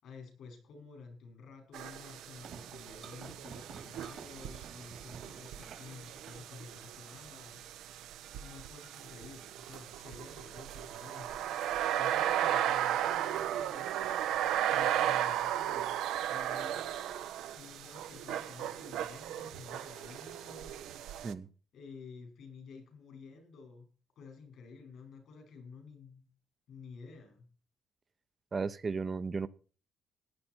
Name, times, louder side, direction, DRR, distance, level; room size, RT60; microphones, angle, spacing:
voice 1, 0.0-7.6 8.4-11.4 12.0-14.2 14.7-16.0 16.3-20.8 21.7-23.9 24.2-26.3 26.7-27.5, left 4 dB, 75° left, 5.3 m, -51 dB
sound 1, 1.7-21.3, right 11 dB, 90° right, 0.9 m, -35 dB
sound 2, 2.4-7.3, right 6 dB, 60° right, 2.0 m, -51 dB
voice 2, 28.5-29.5, right 4 dB, 35° right, 0.7 m, -34 dB
15.5 x 10.0 x 4.5 m
cardioid pair, 90°, 0 cm